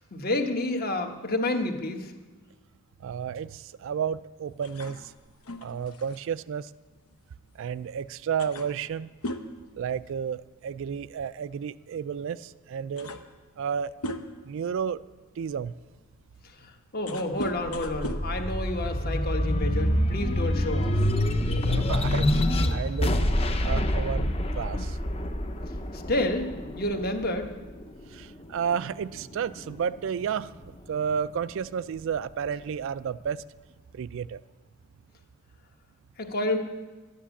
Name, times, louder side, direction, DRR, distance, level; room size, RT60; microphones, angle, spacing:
voice 1, 0.1-2.1 16.9-21.1 25.9-27.5 36.2-36.6, left 1 dB, 45° left, 4 dB, 1.3 m, -29 dB
voice 2, 3.0-5.1 5.6-6.7 7.6-9.1 9.8-13.1 13.6-13.9 14.5-15.0 15.4-15.7 21.8-22.3 22.7-23.1 23.6-25.0 28.1-33.4 33.9-34.4, right 7 dB, 60° right, 16 dB, 0.3 m, -31 dB
sound 1, 4.6-7.7 8.0-8.1 8.4-10.6 10.8-11.1 12.1-12.2 12.6-14.6 15.2-19.3, left 1 dB, 80° left, 0.9 m, -39 dB
sound 2, 17.5-28.2 28.7-29.9, left 1 dB, 25° left, 0.7 m, -26 dB
12.5 x 10.0 x 7.1 m, 1.3 s
head